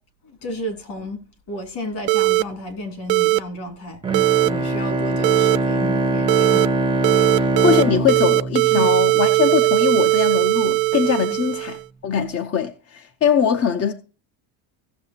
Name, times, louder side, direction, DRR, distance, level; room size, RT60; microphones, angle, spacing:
voice 1, 0.2-1.2 1.5-4.0 4.4-6.7 7.1-7.3 8.7-8.9 11.2-11.4, left 1 dB, 55° left, 3.0 m, -32 dB
sound 1, 2.1-2.4 3.1-3.4 4.1-4.5 5.2-5.6 6.3-6.7 7.0-7.8 8.1-11.8, right 22 dB, 70° right, 0.5 m, -18 dB
Bowed string instrument, 4.0-9.6, right 2 dB, 10° right, 0.7 m, -23 dB
voice 2, 7.4-11.8 12.0-13.9, left 7 dB, 30° left, 0.7 m, -21 dB
16.5 x 6.9 x 2.8 m
cardioid pair, 140°, 47 cm